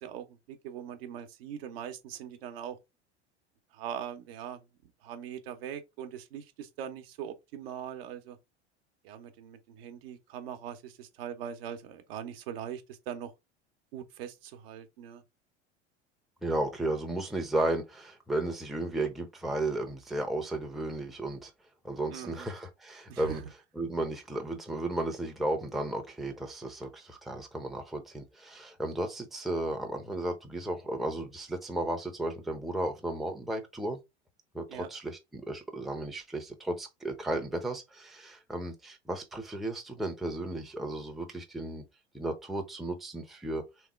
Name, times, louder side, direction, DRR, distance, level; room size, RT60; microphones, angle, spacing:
voice 1, 0.0-2.8 3.7-4.6 5.0-8.4 9.0-13.3 13.9-15.2 22.1-22.5 23.1-23.4 34.7-34.9, right 9 dB, 55° right, 0.9 m, -41 dB
voice 2, 16.4-21.5 21.8-23.4 23.8-34.0 34.5-41.8 42.1-43.6, right 1 dB, ahead, 0.7 m, -34 dB
3.5 x 3.1 x 3.5 m
figure-of-eight pair, 75°, 35 cm